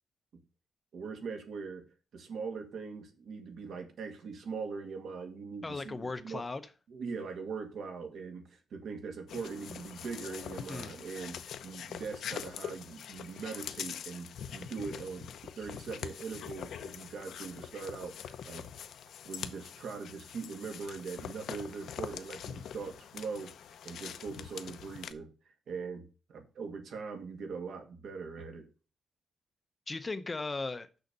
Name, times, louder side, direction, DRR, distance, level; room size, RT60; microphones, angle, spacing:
voice 1, 0.9-1.8 2.1-6.4 6.9-15.3 15.6-18.6 19.3-23.5 23.8-28.7, right 5 dB, 65° right, 5 dB, 2.0 m, -41 dB
voice 2, 5.6-6.7 10.7-11.0 29.9-30.9, left 3 dB, 20° left, 12 dB, 0.6 m, -37 dB
sound 1, 9.3-25.1, left 8 dB, 80° left, 0.7 m, -44 dB
6.6 x 6.3 x 6.8 m, 0.34 s
wide cardioid pair, 175°, 0 cm